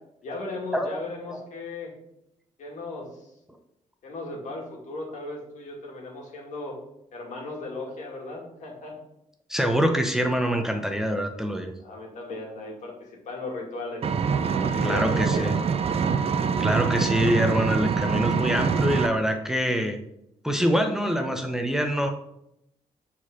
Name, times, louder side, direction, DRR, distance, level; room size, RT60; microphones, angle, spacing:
voice 1, 0.2-1.9 2.6-3.3 4.0-6.8 7.1-8.9 11.8-14.0 14.4-15.7, left 2 dB, 70° left, -1 dB, 2.2 m, -36 dB
voice 2, 9.5-11.7 14.8-15.6 16.6-20.0 20.4-22.1, equal, 5° right, 4 dB, 0.8 m, -25 dB
Engine, 14.0-19.1, right 6 dB, 50° right, 0.6 m, -25 dB
4.9 x 4.3 x 6.0 m, 0.79 s
cardioid pair, 80°, 13 cm